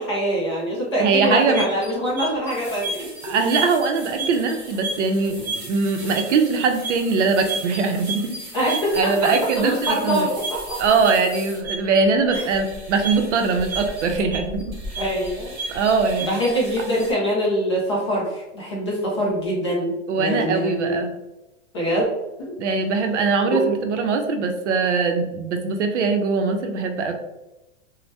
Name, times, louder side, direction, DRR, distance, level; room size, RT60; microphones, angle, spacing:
voice 1, 0.0-3.3 8.5-9.3 9.6-10.8 12.3-12.5 15.0-15.5 16.2-21.0 21.7-22.1 22.4-22.6 23.5-23.6, equal, 25° left, -5 dB, 0.4 m, -24 dB
voice 2, 1.0-1.6 3.2-10.3 10.8-14.6 15.7-16.4 20.1-21.1 22.6-27.1, right 4 dB, 70° right, 5 dB, 0.6 m, -21 dB
sound 1, 1.2-17.1, right 3 dB, 25° right, 0.9 m, -33 dB
2.6 x 2.1 x 3.2 m, 1.0 s
supercardioid pair, 170°, 37 cm